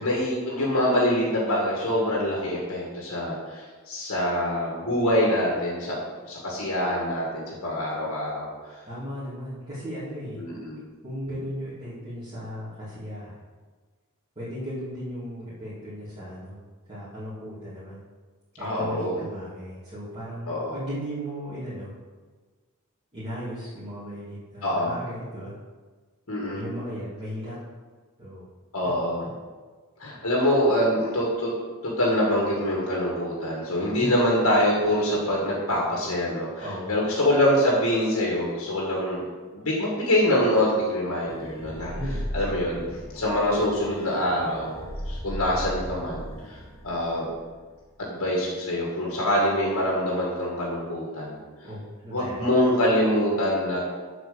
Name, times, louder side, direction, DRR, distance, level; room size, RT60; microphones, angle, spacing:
voice 1, 0.0-6.0 6.3-8.5 10.4-10.8 18.6-19.2 20.5-20.7 24.6-24.9 26.3-26.6 28.7-29.3 30.0-31.5 31.8-39.2 39.5-41.9 42.3-42.8 43.1-44.8 45.1-46.6 46.8-47.3 48.0-51.4 52.1-53.8, left 1 dB, 70° left, -4 dB, 1.9 m, -25 dB
voice 2, 8.8-10.4 11.0-13.4 14.4-16.6 16.9-18.0 18.6-21.9 23.1-25.5 26.5-27.6 28.2-28.5 33.9-34.2 36.6-37.0 41.9-42.2 51.6-52.4, equal, 30° right, -13 dB, 2.8 m, -36 dB
sound 1, 41.3-48.0, equal, 15° left, 0.9 m, -37 dB
7.5 x 4.9 x 6.8 m, 1.4 s
head